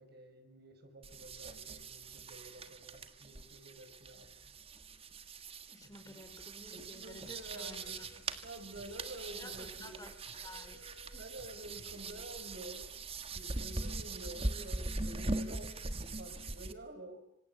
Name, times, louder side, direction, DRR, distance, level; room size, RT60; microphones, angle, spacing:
voice 1, 0.0-4.3 6.0-6.2 6.7-8.0 8.4-10.0 11.2-12.9 13.3-17.3, right 1 dB, 60° right, 7 dB, 5.7 m, -50 dB
sound 1, 1.0-16.7, right 2 dB, 30° right, 1.5 m, -42 dB
voice 2, 5.7-8.2 9.4-10.9 11.1-11.2, left 2 dB, 20° left, 9 dB, 3.6 m, -53 dB
sound 2, 7.3-8.3 8.8-9.9 10.3-12.0, left 1 dB, 75° left, 6.3 m, -59 dB
26.5 x 26.0 x 8.1 m, 0.75 s
head